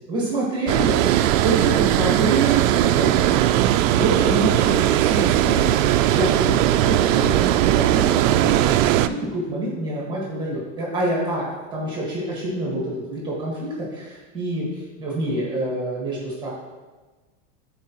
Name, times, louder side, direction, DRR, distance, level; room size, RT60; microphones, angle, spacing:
voice 1, 0.1-1.0 1.4-3.4 3.9-5.7 6.0-16.5, right 2 dB, 10° right, -5 dB, 1.6 m, -27 dB
Water, 0.7-9.1, right 12 dB, 85° right, 0.5 m, -19 dB
13.0 x 4.6 x 3.0 m, 1.3 s
supercardioid pair, 175°, 38 cm